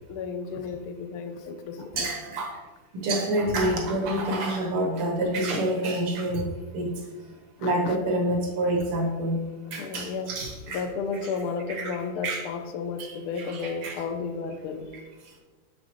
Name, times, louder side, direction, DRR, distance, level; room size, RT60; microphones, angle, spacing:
voice 1, 0.1-2.4 7.6-8.0 9.8-14.9, left 5 dB, 80° left, 7 dB, 1.5 m, -33 dB
voice 2, 2.0-2.6 2.9-6.9 7.6-10.8 11.7-12.0 12.2-12.4 13.0-13.1 13.4-14.0, right 1 dB, 85° right, 1 dB, 2.1 m, -27 dB
8.4 x 4.1 x 3.0 m, 1.3 s
omnidirectional pair, 2.4 m